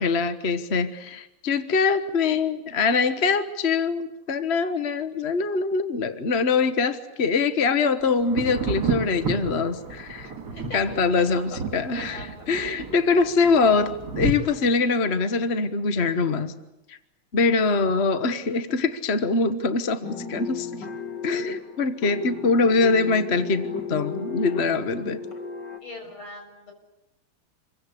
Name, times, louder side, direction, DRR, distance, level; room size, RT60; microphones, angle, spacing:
voice 1, 0.0-10.3 10.7-12.2 12.5-16.5 16.9-17.0 17.3-20.7 21.2-25.2, left 4 dB, 35° left, 9 dB, 1.3 m, -23 dB
Thunder, 8.2-14.3, right 4 dB, 50° right, 3.2 m, -32 dB
voice 2, 10.5-11.4 11.7-12.5 25.8-26.7, left 2 dB, 65° left, 2 dB, 7.9 m, -41 dB
sound 1, 20.0-25.8, left 6 dB, 50° left, 3.1 m, -34 dB
28.0 x 23.0 x 8.5 m, 0.90 s
omnidirectional pair, 2.4 m